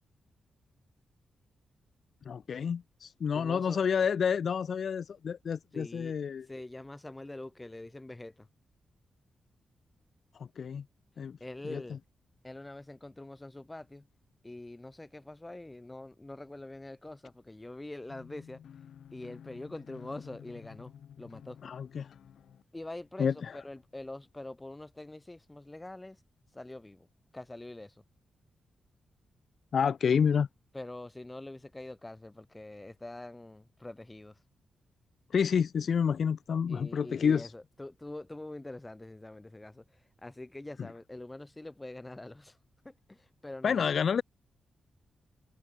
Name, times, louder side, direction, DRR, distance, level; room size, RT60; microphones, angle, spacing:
voice 1, 2.3-6.5 10.3-10.8 11.2-11.4 11.7-11.8 21.6-22.1 23.2-23.6 29.7-30.5 35.3-37.5 43.6-44.2, left 7 dB, 50° left, 0.5 m, -29 dB
voice 2, 3.3-4.1 5.7-6.2 6.5-8.5 11.4-12.0 12.4-14.1 14.4-18.6 19.1-21.6 22.7-26.2 26.5-27.1 27.3-27.9 30.7-34.3 36.7-39.8 40.2-42.6 42.8-43.9, left 2 dB, 10° left, 1.0 m, -44 dB
sound 1, 18.1-22.6, left 9 dB, 70° left, 3.4 m, -52 dB
wide cardioid pair, 170°, 0 cm